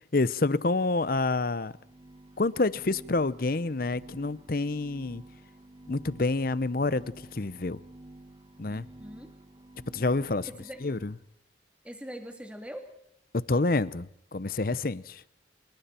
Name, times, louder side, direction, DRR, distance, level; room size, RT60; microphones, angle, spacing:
voice 1, 0.1-1.7 2.4-5.2 5.9-7.8 8.6-8.9 9.9-10.5 10.8-11.1 13.3-15.2, left 3 dB, 55° left, 0.8 m, -28 dB
sound 1, 1.6-11.3, right 1 dB, 25° right, 1.0 m, -51 dB
voice 2, 8.7-9.3 10.4-10.8 11.8-12.9, equal, 5° right, 3.0 m, -42 dB
27.0 x 23.0 x 4.4 m
head